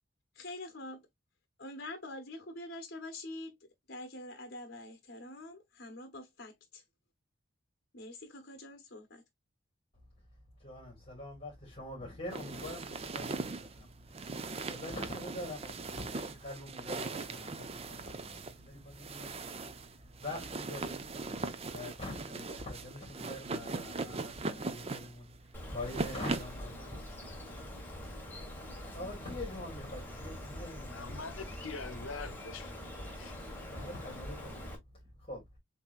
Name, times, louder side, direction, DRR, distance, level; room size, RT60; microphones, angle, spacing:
voice 1, 0.3-1.0 1.6-3.6 3.9-6.8 7.9-9.2, left 1 dB, 55° left, 1.0 m, -45 dB
voice 2, 10.6-14.2 14.7-21.0 21.7-31.1 33.7-34.8 35.2-35.4, left 1 dB, 30° left, 2.6 m, -45 dB
sound 1, 12.3-26.6, right 3 dB, 30° right, 0.5 m, -40 dB
Bird, 25.5-34.8, left 1 dB, 10° left, 1.5 m, -44 dB
voice 3, 30.8-33.3, left 4 dB, 75° left, 0.8 m, -44 dB
7.2 x 2.7 x 2.4 m
head